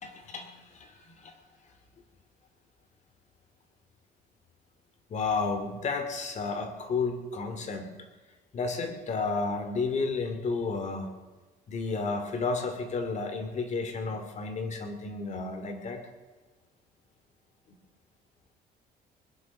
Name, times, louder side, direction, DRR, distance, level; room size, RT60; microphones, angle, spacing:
voice 1, 0.0-0.9 1.2-1.3 5.1-7.9 8.5-11.1 11.7-16.0, left 4 dB, 45° left, 7 dB, 2.5 m, -32 dB
21.0 x 10.5 x 6.5 m, 1.3 s
cardioid pair, 110°, 17 cm